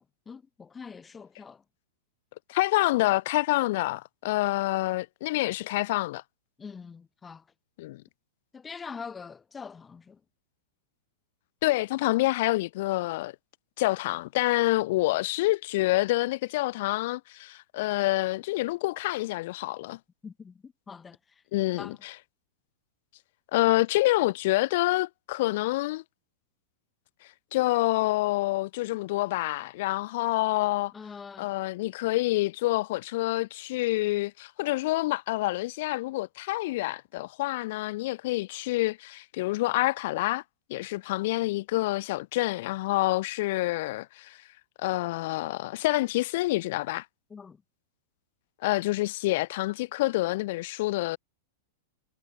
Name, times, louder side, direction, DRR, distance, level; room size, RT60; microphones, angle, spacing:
voice 1, 0.0-1.6 6.6-7.5 8.5-10.2 20.2-21.4 21.8-22.0 30.9-31.5 47.3-47.6, left 5 dB, 15° left, 4.4 m, -44 dB
voice 2, 2.5-6.2 7.8-8.0 11.6-13.4 13.8-20.0 21.5-22.1 23.5-26.0 27.5-30.9 31.4-40.4 40.7-44.4 44.8-47.1 48.6-51.2, left 18 dB, 55° left, 3.7 m, -27 dB
supercardioid pair, 150°, 0 cm